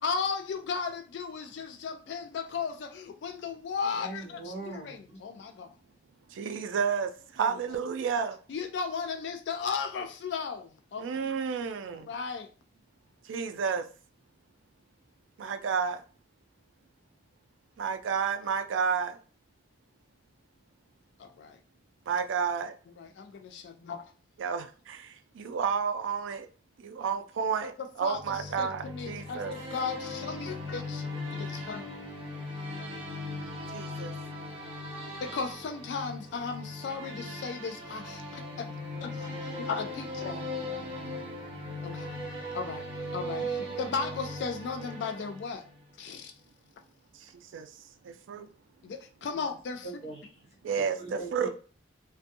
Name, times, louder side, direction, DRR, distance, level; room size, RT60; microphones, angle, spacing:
voice 1, 0.0-5.7 7.4-7.5 8.5-11.3 11.9-12.5 21.2-21.6 23.0-24.0 28.0-32.4 35.2-38.7 39.0-40.5 41.8-42.1 42.5-42.8 43.1-45.6 46.0-46.3 48.4-48.5 48.8-49.9, left 5 dB, 65° left, 0.3 m, -36 dB
voice 2, 3.9-5.2 49.3-49.5 49.8-50.5 51.0-51.5, right 3 dB, 35° left, 1.0 m, -41 dB
voice 3, 6.3-8.4 11.0-12.1 13.3-13.9 15.4-16.0 17.8-19.2 22.1-22.7 24.4-26.5 26.8-29.5 33.7-34.1 43.4-43.8 47.5-47.7 48.1-48.5 50.6-51.5, right 6 dB, 85° right, 0.4 m, -31 dB
sound 1, 28.1-45.8, left 1 dB, 30° right, 0.6 m, -38 dB
2.5 x 2.2 x 2.6 m
head